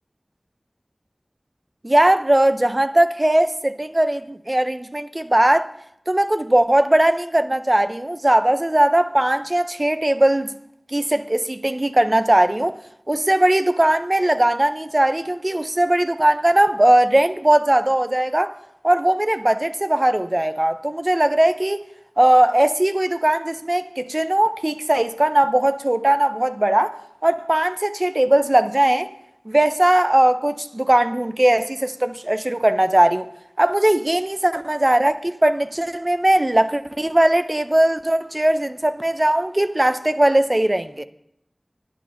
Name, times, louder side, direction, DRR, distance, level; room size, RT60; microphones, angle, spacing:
voice 1, 1.8-5.7 6.1-10.5 10.9-12.7 13.1-18.6 18.8-21.8 22.2-27.0 27.2-29.1 29.5-33.3 33.6-41.0, right 1 dB, 30° right, 0.6 m, -19 dB
10.5 x 10.0 x 5.6 m
wide cardioid pair, 50°, 0 cm